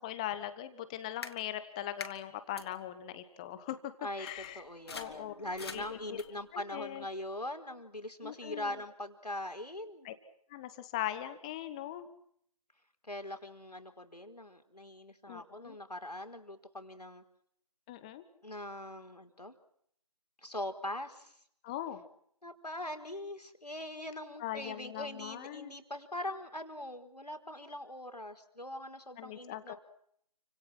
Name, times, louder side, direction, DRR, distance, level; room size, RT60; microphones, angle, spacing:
voice 1, 0.0-3.9 4.2-4.6 4.9-5.3 5.7-6.2 6.5-7.0 8.2-8.8 10.0-10.1 10.5-12.1 15.3-15.8 17.9-18.2 21.6-22.0 24.4-25.7 29.2-29.7, left 12 dB, 10° left, 12 dB, 1.1 m, -40 dB
sound 1, 1.2-1.3 2.0-2.1 2.6-2.7 3.8-3.9 4.3-6.5, left 5 dB, 40° left, 3.2 m, -46 dB
voice 2, 4.5-10.1 13.0-17.2 18.4-19.6 20.4-21.4 22.4-29.8, left 1 dB, 90° left, 6 dB, 4.6 m, -42 dB
29.5 x 26.0 x 6.1 m, 0.68 s
figure-of-eight pair, 155°, 20 cm